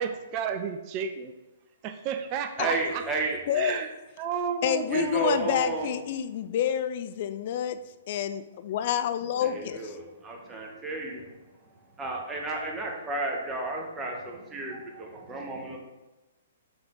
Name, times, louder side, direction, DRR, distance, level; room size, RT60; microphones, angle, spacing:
voice 1, 0.0-1.3 1.8-3.0 3.5-5.3, right 7 dB, 35° right, 8 dB, 0.5 m, -32 dB
voice 2, 2.6-3.4 4.9-5.9 9.4-11.3 12.0-15.8, right 3 dB, 15° right, 0 dB, 1.2 m, -32 dB
voice 3, 3.5-3.8 4.6-7.8 8.1-10.0, left 10 dB, 50° left, 11 dB, 0.4 m, -28 dB
6.7 x 3.9 x 3.7 m, 1.0 s
figure-of-eight pair, 120°, 0 cm